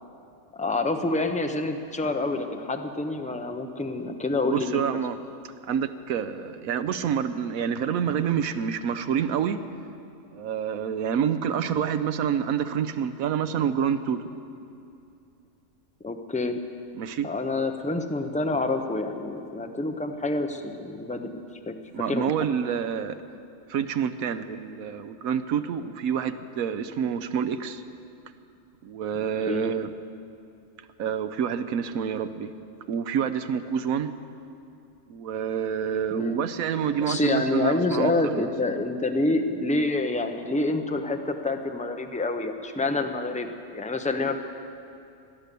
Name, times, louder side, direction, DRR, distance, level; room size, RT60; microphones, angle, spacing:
voice 1, 0.5-5.0 16.0-16.6 17.2-21.7 22.1-22.3 29.5-29.7 36.1-36.4 37.0-43.5 43.7-44.4, left 2 dB, 10° left, 6 dB, 0.5 m, -27 dB
voice 2, 4.4-5.2 5.7-9.6 10.3-14.2 16.9-17.3 21.9-23.2 23.7-27.8 28.8-29.9 31.0-32.5 32.9-34.1 35.1-38.5, right 8 dB, 80° right, 11 dB, 1.2 m, -27 dB
17.0 x 11.5 x 6.8 m, 2.6 s
omnidirectional pair, 1.5 m